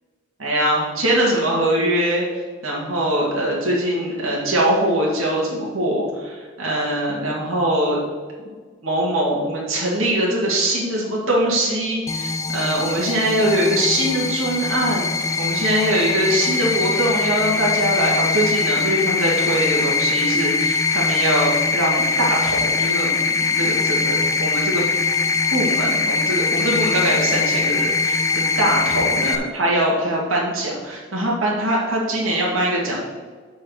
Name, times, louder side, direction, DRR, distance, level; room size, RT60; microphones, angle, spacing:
voice 1, 0.4-2.3 2.6-8.0 8.8-15.1 15.4-24.8 25.5-28.2 28.6-33.0, right 1 dB, 85° right, -4 dB, 2.1 m, -22 dB
sound 1, 12.1-29.4, left 4 dB, 15° left, 0.5 m, -22 dB
6.2 x 5.9 x 6.5 m, 1.5 s
head